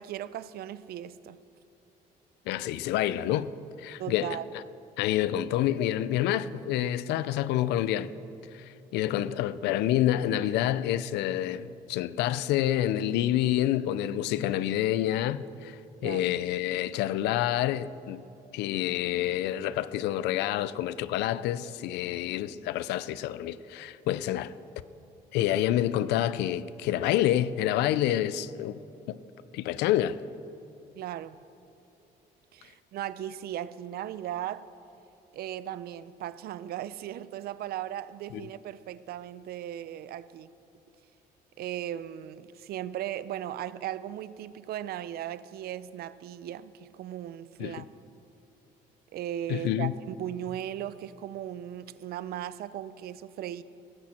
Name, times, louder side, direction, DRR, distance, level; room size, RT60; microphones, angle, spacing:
voice 1, 0.0-1.4 4.0-4.5 16.0-16.4 31.0-31.4 32.5-34.7 35.3-40.5 41.6-47.8 49.1-53.6, right 11 dB, 65° right, 0.6 m, -37 dB
voice 2, 2.5-3.5 3.8-4.3 5.0-8.1 8.5-8.6 8.9-18.2 18.5-24.5 25.3-28.8 29.1-29.2 29.5-30.2 38.3-38.5 47.6-47.8 49.5-49.9, left 12 dB, 85° left, 0.6 m, -28 dB
17.5 x 15.0 x 4.4 m
cardioid pair, 110°, 17 cm